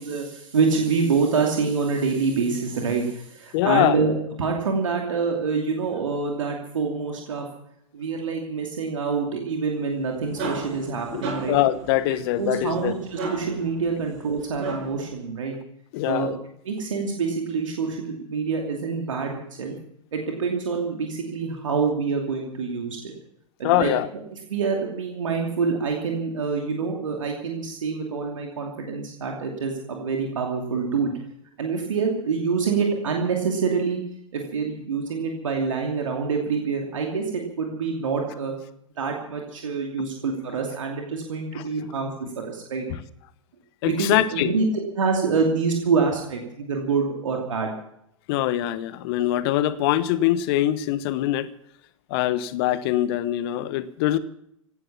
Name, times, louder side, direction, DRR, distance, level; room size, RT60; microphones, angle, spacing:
voice 1, 0.0-7.4 7.9-11.6 12.4-15.6 16.1-16.3 16.6-19.7 20.1-23.1 23.6-23.9 24.3-31.1 31.6-34.0 34.3-38.5 39.0-42.9 43.8-44.7 44.9-47.7, right 5 dB, 70° right, 1 dB, 2.7 m, -26 dB
voice 2, 3.5-4.1 11.1-11.2 11.5-12.9 15.9-16.4 23.6-24.1 41.5-41.6 42.9-43.0 43.8-44.5 48.3-51.5 52.1-54.2, left 14 dB, 50° left, 15 dB, 1.1 m, -23 dB
sound 1, 9.9-15.1, right 3 dB, 50° right, 7.4 m, -35 dB
17.0 x 11.0 x 7.3 m, 0.75 s
figure-of-eight pair, 95°, 17 cm